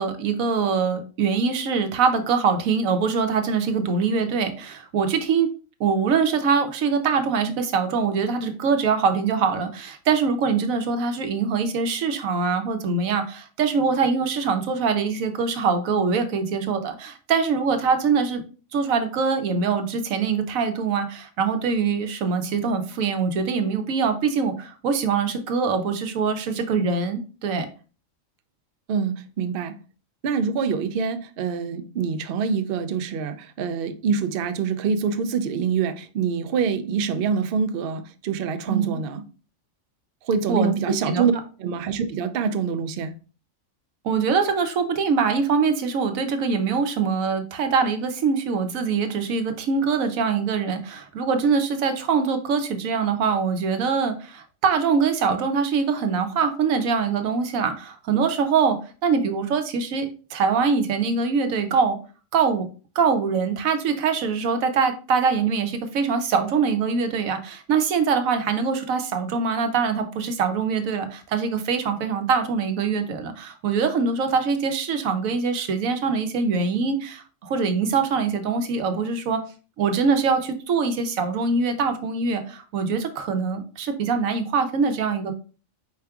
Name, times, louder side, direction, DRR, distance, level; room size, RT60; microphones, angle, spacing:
voice 1, 0.0-5.5 5.8-18.4 18.7-27.7 38.7-39.0 40.5-40.7 41.1-41.2 44.0-58.8 59.0-62.0 62.3-62.7 63.0-79.4 79.8-85.3, right 5 dB, 80° right, 1.1 m, -23 dB
voice 2, 28.9-29.8 30.2-39.2 40.2-41.3 41.6-43.1, right 6 dB, 65° right, 0.5 m, -25 dB
4.6 x 4.3 x 2.3 m
omnidirectional pair, 1.4 m